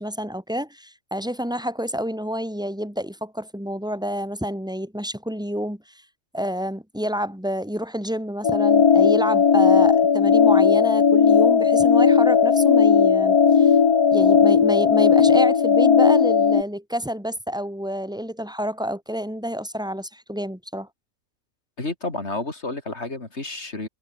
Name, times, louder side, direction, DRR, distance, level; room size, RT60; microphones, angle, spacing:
voice 1, 0.0-5.8 6.3-13.7 14.1-20.9, equal, 5° right, 2.8 m, -29 dB
sound 1, 8.4-16.6, left 6 dB, 85° left, 2.3 m, -16 dB
voice 2, 21.8-23.9, left 2 dB, 45° left, 4.0 m, -30 dB
omnidirectional pair, 1.6 m